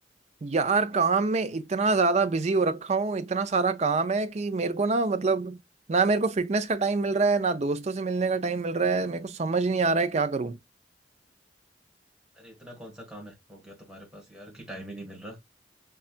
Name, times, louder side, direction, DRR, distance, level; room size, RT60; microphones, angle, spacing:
voice 1, 0.4-5.6 5.9-10.6, right 4 dB, 40° right, 0.4 m, -25 dB
voice 2, 12.3-15.4, right 1 dB, 5° right, 1.6 m, -43 dB
5.4 x 2.4 x 2.5 m
head